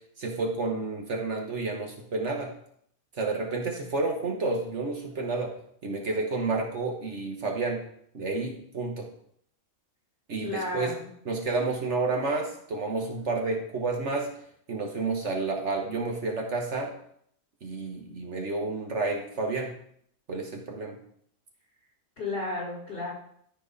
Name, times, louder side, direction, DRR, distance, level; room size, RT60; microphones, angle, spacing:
voice 1, 0.2-2.5 3.1-5.5 5.8-7.8 8.1-9.1 10.3-10.9 11.2-14.3 14.7-16.9 17.6-19.7 20.3-21.0, right 3 dB, 55° right, 1 dB, 1.5 m, -30 dB
voice 2, 10.4-11.1 22.2-23.1, left 2 dB, 50° left, -6 dB, 4.4 m, -33 dB
13.5 x 4.6 x 4.1 m, 0.66 s
omnidirectional pair, 1.4 m